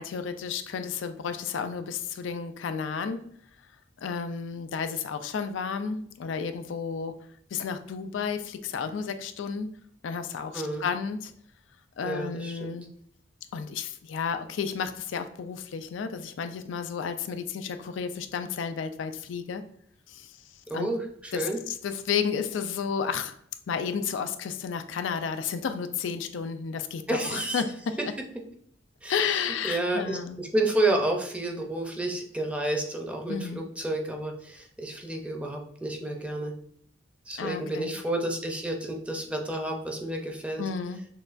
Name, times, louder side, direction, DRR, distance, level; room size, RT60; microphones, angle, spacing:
voice 1, 0.0-3.3 4.0-7.2 7.5-9.7 10.0-11.3 12.0-12.9 13.5-19.6 20.1-20.4 20.7-20.9 21.3-23.3 23.7-28.0 29.1-30.4 33.3-33.6 37.4-37.9 40.6-41.0, left 6 dB, 90° left, 9 dB, 0.4 m, -32 dB
voice 2, 10.5-10.9 12.0-12.8 20.7-21.6 27.1-27.6 28.0-28.1 29.0-36.5 37.3-40.6, right 1 dB, 5° right, 2 dB, 0.6 m, -30 dB
6.3 x 2.3 x 2.5 m, 0.64 s
head